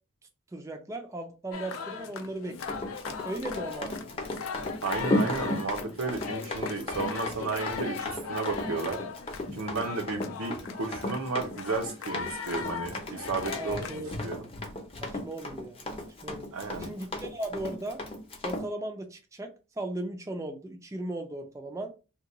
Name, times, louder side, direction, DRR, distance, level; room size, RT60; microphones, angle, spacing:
voice 1, 0.5-3.0 3.2-3.9 13.6-14.3 15.0-15.8 16.2-16.5 16.8-18.0 18.4-21.9, right 1 dB, 15° right, 0.3 m, -37 dB
sound 1, 1.5-14.1, left 6 dB, 80° left, 0.4 m, -39 dB
Run, 2.6-18.7, left 2 dB, 25° left, 0.6 m, -35 dB
voice 2, 4.8-9.0 9.5-14.5 16.5-16.9, right 4 dB, 85° right, 0.7 m, -33 dB
2.8 x 2.2 x 3.7 m
head